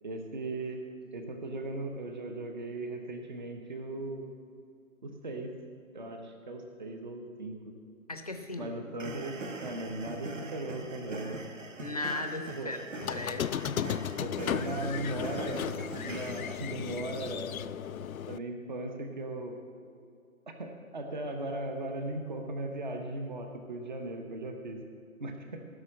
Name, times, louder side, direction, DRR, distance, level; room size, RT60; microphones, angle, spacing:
voice 1, 0.0-0.8 1.1-4.3 5.0-5.5 5.9-7.7 8.6-9.4 9.6-11.4 12.6-12.7 14.2-15.7 16.0-17.8 18.3-19.6 20.6-24.8 25.2-25.7, right 2 dB, 35° right, 4 dB, 0.9 m, -38 dB
voice 2, 8.1-8.7 11.8-13.5, left 2 dB, 25° left, 6 dB, 0.7 m, -36 dB
sound 1, 9.0-16.6, right 2 dB, 60° right, 1.4 m, -41 dB
Squeak, 13.0-18.4, left 9 dB, 75° left, 0.5 m, -35 dB
16.0 x 6.3 x 7.5 m, 2.5 s
hypercardioid pair, 170°, 43 cm